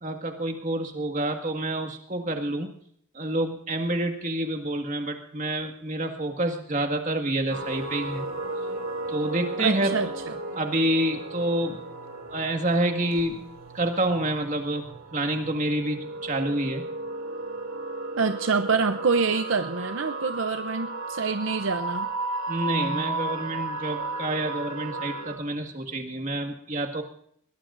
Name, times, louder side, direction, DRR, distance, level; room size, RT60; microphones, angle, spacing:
voice 1, 0.0-2.7 3.2-8.3 9.1-10.0 10.6-11.8 12.3-13.5 13.7-14.8 15.1-16.8 22.5-27.0, right 1 dB, 35° right, 5 dB, 1.8 m, -28 dB
sound 1, 7.5-25.4, right 2 dB, 90° right, 2.9 m, -34 dB
voice 2, 9.6-10.4 18.2-22.1, right 5 dB, 65° right, 8 dB, 0.6 m, -26 dB
21.5 x 18.0 x 2.6 m, 0.63 s
head